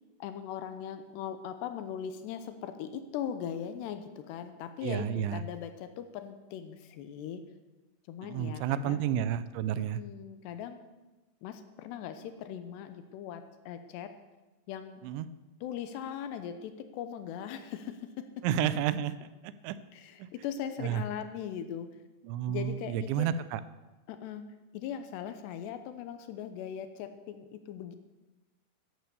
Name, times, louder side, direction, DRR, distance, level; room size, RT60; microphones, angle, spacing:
voice 1, 0.2-7.4 8.1-9.1 10.0-10.8 11.4-14.1 14.7-15.0 15.6-18.4 19.9-21.9 22.5-23.3 24.1-24.4 24.7-28.0, left 9 dB, 75° left, 9 dB, 2.8 m, -39 dB
voice 2, 4.8-5.4 8.2-10.0 15.0-15.3 18.4-19.8 20.2-20.3 20.8-21.0 22.2-23.6, right 10 dB, 85° right, 14 dB, 2.9 m, -31 dB
13.5 x 11.0 x 6.9 m, 1.1 s
omnidirectional pair, 5.2 m